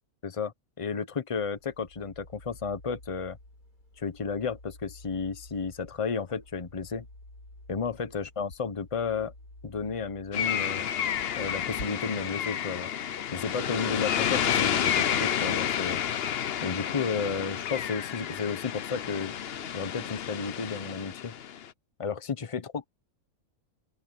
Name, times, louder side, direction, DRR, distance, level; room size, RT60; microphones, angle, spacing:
voice 1, 0.2-3.4 4.0-7.1 7.7-9.3 9.6-10.9 11.4-12.9 13.3-16.0 16.6-19.3 19.7-21.3 22.0-22.9, left 5 dB, 25° left, 1.0 m, -32 dB
sound 1, 1.3-11.9, left 1 dB, 90° left, 8.6 m, -50 dB
sound 2, 10.3-21.7, left 9 dB, 55° left, 0.8 m, -30 dB
open air
omnidirectional pair, 1.6 m